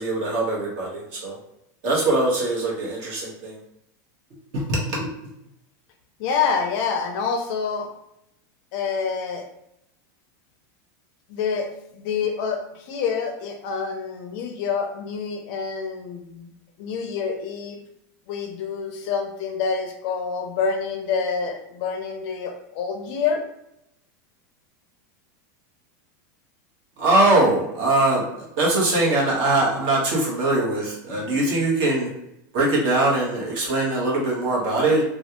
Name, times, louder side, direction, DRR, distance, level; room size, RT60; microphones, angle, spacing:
voice 1, 0.0-1.4 1.8-3.6 4.5-5.1 27.0-28.2 28.6-32.1 32.5-35.0, right 2 dB, 50° right, -4 dB, 1.3 m, -22 dB
voice 2, 6.2-7.9 8.7-9.5 11.3-16.5 16.8-17.8 18.3-23.4 27.3-27.5, left 5 dB, 45° left, 4 dB, 0.5 m, -27 dB
3.2 x 2.3 x 2.9 m, 0.79 s
supercardioid pair, 160°, 10 cm